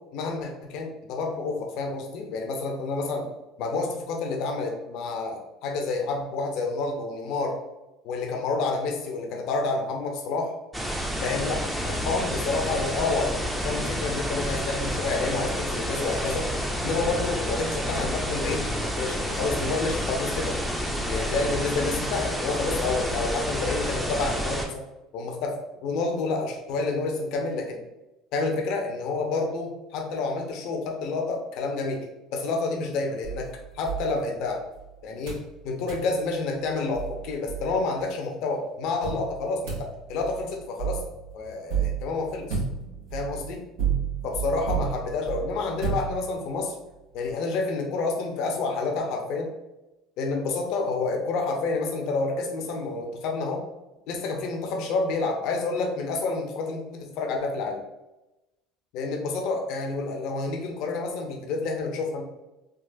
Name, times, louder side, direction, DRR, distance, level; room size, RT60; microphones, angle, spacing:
voice 1, 0.0-3.3 3.6-7.6 8.0-10.6 11.2-16.5 16.8-20.6 21.1-24.8 25.1-27.8 28.3-32.1 32.3-33.5 33.7-34.6 35.0-41.0 41.3-42.6 43.1-43.6 44.2-46.7 47.1-49.5 50.2-53.6 54.1-57.8 58.9-62.2, left 3 dB, 65° left, 2 dB, 0.7 m, -29 dB
sound 1, 10.7-24.7, equal, 5° right, 0.6 m, -29 dB
sound 2, 33.2-34.8 35.3-35.5 35.9-36.1 36.6-36.7 36.9-38.0 39.0-46.6, right 7 dB, 85° right, 1.3 m, -32 dB
3.7 x 2.4 x 2.6 m, 1.0 s
supercardioid pair, 90°, 0 cm